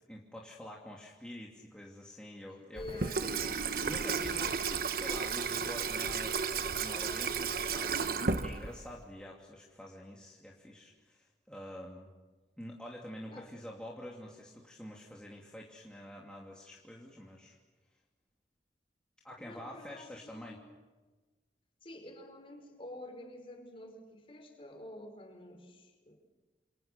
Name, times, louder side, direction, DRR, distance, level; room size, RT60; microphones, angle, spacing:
voice 1, 0.0-3.4 3.8-12.1 12.6-17.6 19.2-20.6, equal, 5° left, -3 dB, 2.8 m, -47 dB
voice 2, 2.6-4.1 13.3-13.5 19.4-20.7 21.8-26.2, left 1 dB, 30° left, 4 dB, 5.3 m, -48 dB
Water tap faucet / Sink (filling or washing), 2.8-9.0, right 5 dB, 50° right, 1.2 m, -33 dB
28.5 x 28.5 x 6.9 m, 1.3 s
head